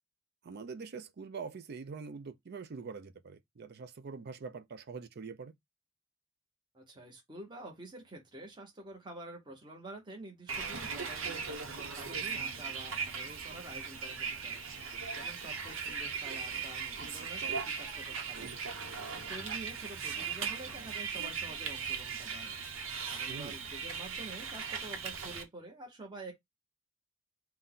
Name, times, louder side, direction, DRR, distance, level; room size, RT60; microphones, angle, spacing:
voice 1, 0.4-5.5 23.3-23.6, right 5 dB, 55° right, 0.5 m, -44 dB
voice 2, 6.7-14.6 15.1-22.6 23.1-26.3, right 2 dB, 25° right, 1.0 m, -48 dB
Bus, 10.5-25.4, right 6 dB, 90° right, 0.9 m, -38 dB
4.0 x 2.2 x 3.6 m
head